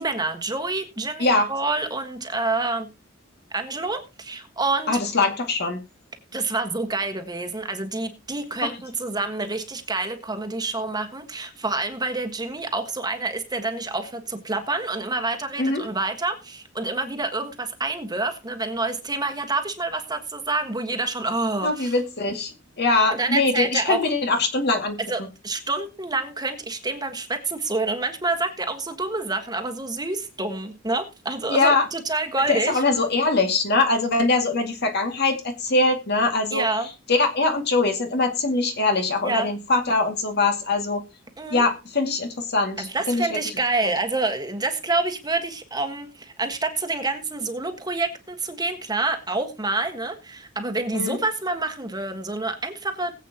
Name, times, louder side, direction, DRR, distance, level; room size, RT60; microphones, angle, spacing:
voice 1, 0.0-2.9 3.5-5.0 6.3-21.9 23.1-24.0 25.1-32.8 36.5-36.9 39.2-39.5 41.4-41.7 42.8-53.1, right 3 dB, 20° right, 5 dB, 1.5 m, -27 dB
voice 2, 1.2-1.5 4.9-5.8 8.6-8.7 15.6-15.9 21.6-25.0 31.5-31.8 32.5-36.6 37.1-41.0 41.5-43.3 50.9-51.2, left 3 dB, 55° left, 4 dB, 2.2 m, -22 dB
20.5 x 8.2 x 2.9 m, 0.28 s
head